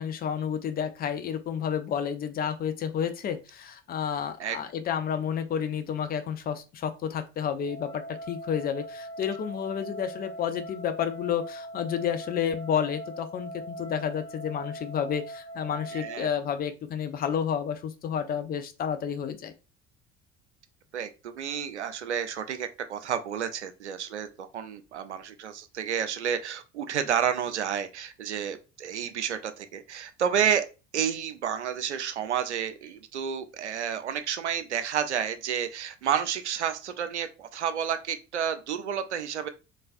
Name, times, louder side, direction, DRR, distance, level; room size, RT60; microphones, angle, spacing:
voice 1, 0.0-19.5, left 8 dB, 25° left, 8 dB, 0.5 m, -30 dB
sound 1, 7.6-16.3, right 1 dB, 80° left, 1.1 m, -41 dB
voice 2, 15.9-16.3 20.9-30.7 30.9-39.5, right 8 dB, 80° right, 10 dB, 0.5 m, -30 dB
3.8 x 3.2 x 2.5 m, 0.30 s
figure-of-eight pair, 60°, 34 cm